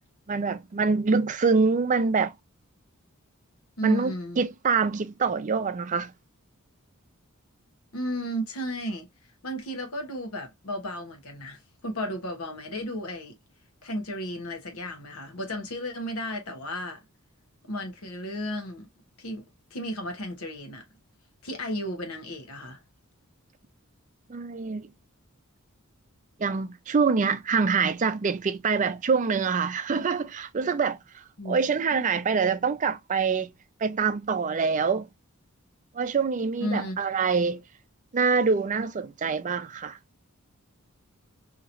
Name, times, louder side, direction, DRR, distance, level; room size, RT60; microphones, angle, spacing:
voice 1, 0.3-2.3 3.8-6.1 24.3-24.9 26.4-33.5 33.8-35.1 35.9-37.6 38.1-40.0, right 5 dB, 35° right, 0.4 m, -25 dB
voice 2, 3.8-4.4 7.9-9.1 9.4-13.4 13.8-17.0 17.7-18.9 19.2-20.8 21.4-22.8 31.4-31.6 31.9-32.0 36.6-37.0, equal, 85° left, 1.0 m, -33 dB
2.9 x 2.8 x 2.5 m
head